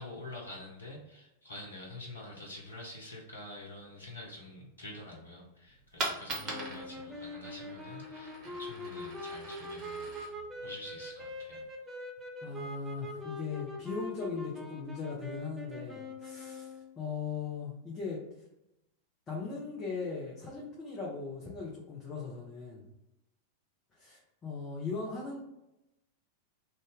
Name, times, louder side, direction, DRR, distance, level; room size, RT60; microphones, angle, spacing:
voice 1, 0.0-10.1 10.6-11.6 11.9-12.0, left 1 dB, 75° left, -3 dB, 0.8 m, -47 dB
Coin (dropping), 5.7-11.7, right 2 dB, 30° right, 1.1 m, -42 dB
sound 1, 6.4-16.9, left 1 dB, 10° right, 0.5 m, -43 dB
voice 2, 12.4-18.2 19.3-22.8 23.9-25.4, left 4 dB, 25° left, -5 dB, 0.8 m, -39 dB
2.6 x 2.4 x 3.5 m, 0.90 s
figure-of-eight pair, 90°, 0 cm